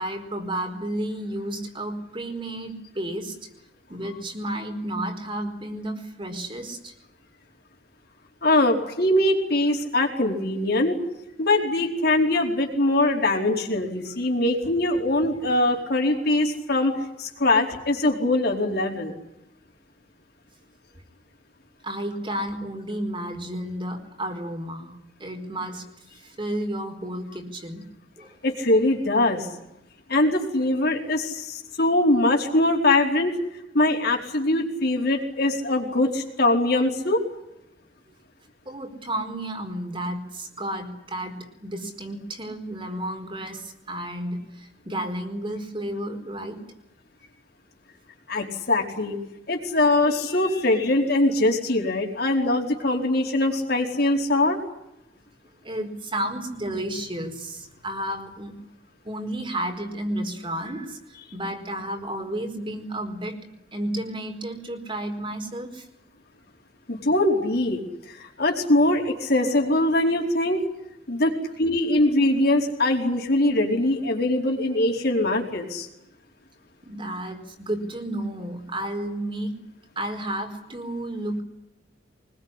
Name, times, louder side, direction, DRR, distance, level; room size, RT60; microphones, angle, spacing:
voice 1, 0.0-3.4 3.9-6.9 21.8-25.9 26.1-27.9 28.2-28.4 38.6-46.6 55.6-58.6 59.0-63.4 63.7-65.9 76.8-79.6 80.0-81.4, right 1 dB, 30° right, 4 dB, 4.6 m, -32 dB
voice 2, 8.4-11.0 11.4-16.9 17.2-19.1 28.4-29.5 30.1-33.3 33.7-37.2 48.3-49.2 49.5-54.6 66.9-70.6 71.1-75.9, left 2 dB, 60° left, 2 dB, 4.7 m, -22 dB
24.5 x 21.5 x 10.0 m, 0.87 s
head